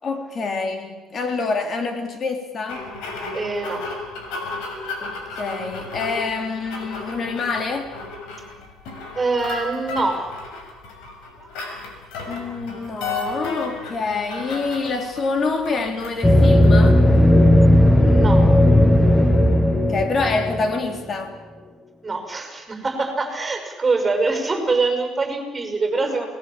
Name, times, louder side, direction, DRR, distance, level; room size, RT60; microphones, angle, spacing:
voice 1, 0.0-2.9 5.0-5.1 5.4-7.9 12.3-17.0 19.7-21.3 26.0-26.3, left 4 dB, 35° left, 5 dB, 3.3 m, -26 dB
sound 1, 2.7-17.2, left 3 dB, 85° left, 6.4 m, -34 dB
voice 2, 3.3-3.8 9.1-10.3 11.4-11.7 18.0-18.5 22.0-26.3, right 3 dB, 15° right, 5 dB, 6.1 m, -24 dB
sound 2, 16.2-21.0, left 1 dB, 5° left, 1.5 m, -15 dB
27.5 x 20.0 x 7.5 m, 1.2 s
cardioid pair, 135°, 0 cm